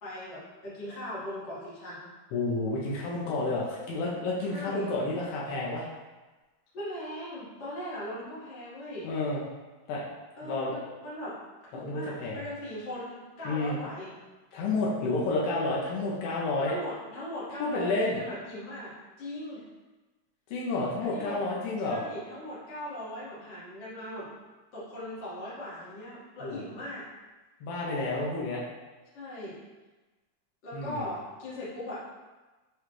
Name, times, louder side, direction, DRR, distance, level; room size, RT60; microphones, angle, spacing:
voice 1, 0.0-2.1 4.4-4.9 6.7-9.1 10.3-11.4 11.7-14.1 16.6-19.6 21.0-21.4 21.8-24.3 24.7-27.0 29.1-29.6 30.6-32.0, left 1 dB, 60° left, -10 dB, 1.2 m, -39 dB
voice 2, 2.3-5.9 9.0-9.4 9.9-10.0 10.4-10.7 11.8-12.4 13.5-13.8 14.5-16.7 17.6-18.2 20.5-22.0 26.4-26.6 27.6-28.6 30.7-31.0, left 2 dB, 80° left, -4 dB, 2.2 m, -30 dB
6.7 x 2.2 x 3.0 m, 1.2 s
omnidirectional pair, 4.4 m